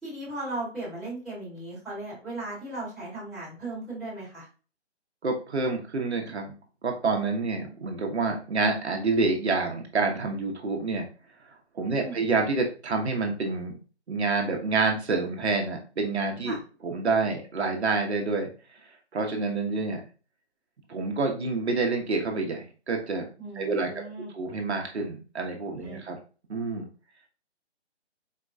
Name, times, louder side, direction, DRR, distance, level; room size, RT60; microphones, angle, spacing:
voice 1, 0.0-4.5 11.9-12.2 16.4-16.6 23.4-24.3 25.8-26.0, right 2 dB, ahead, -17 dB, 0.8 m, -37 dB
voice 2, 5.2-6.5 6.8-11.1 11.7-13.8 14.1-16.6 16.8-18.5 19.1-20.0 20.9-23.3 23.6-23.9 24.3-26.2 26.5-26.9, right 3 dB, 70° right, 2 dB, 1.0 m, -27 dB
4.4 x 2.2 x 2.6 m, 0.36 s
hypercardioid pair, 160°, 35 cm